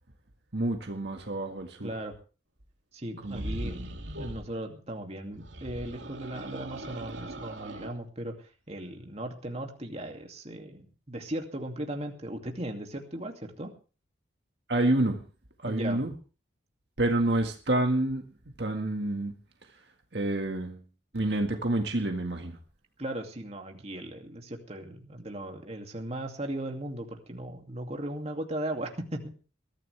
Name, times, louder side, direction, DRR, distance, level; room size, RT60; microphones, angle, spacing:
voice 1, 0.5-1.9 3.2-3.7 4.1-4.3 14.7-15.2 15.6-16.1 17.0-18.2 18.6-19.3 20.1-20.8 21.1-22.6, right 1 dB, 60° right, 4 dB, 1.8 m, -28 dB
voice 2, 1.8-2.1 2.9-3.9 4.2-8.3 8.7-13.7 15.6-16.0 23.0-29.4, right 1 dB, 35° right, 3 dB, 2.5 m, -37 dB
sound 1, 3.2-4.5 5.3-8.0, right 1 dB, 80° right, 2.6 m, -39 dB
22.0 x 13.5 x 3.4 m, 0.36 s
head